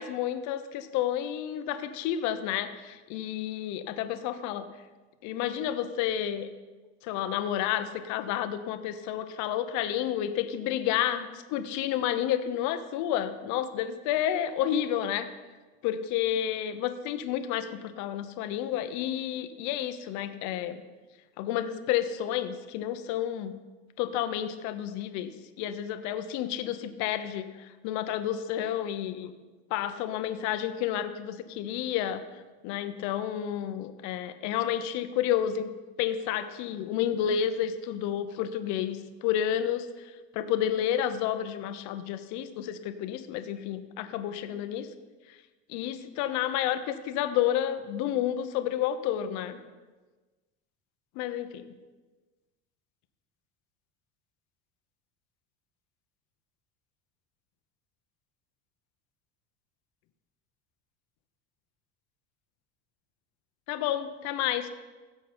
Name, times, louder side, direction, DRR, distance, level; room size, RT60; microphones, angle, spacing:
voice 1, 0.0-4.6 5.2-6.5 7.0-15.3 15.8-20.8 21.4-23.6 24.0-25.3 25.6-29.3 29.7-32.2 32.6-35.7 36.0-39.9 40.3-44.9 45.7-49.6 51.2-51.6 63.7-64.7, left 10 dB, 65° left, 10 dB, 1.0 m, -30 dB
16.5 x 7.2 x 4.4 m, 1.3 s
cardioid pair, 125°, 31 cm